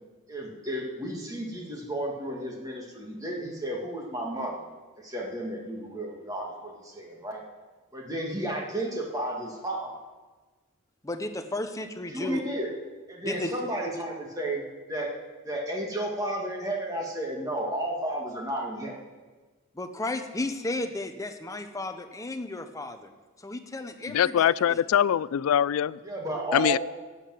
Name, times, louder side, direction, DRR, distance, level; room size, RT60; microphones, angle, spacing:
voice 1, 0.3-4.6 5.0-7.4 7.9-9.9 12.1-12.7 13.1-14.6 14.9-15.1 15.4-18.9 26.0-26.8, right 1 dB, 15° right, 1.9 m, -32 dB
voice 2, 11.0-12.4 13.2-13.5 19.7-23.1 23.4-24.8, left 2 dB, 15° left, 0.7 m, -34 dB
voice 3, 24.1-26.0 26.5-26.8, left 9 dB, 75° left, 0.3 m, -23 dB
11.5 x 8.4 x 7.6 m
head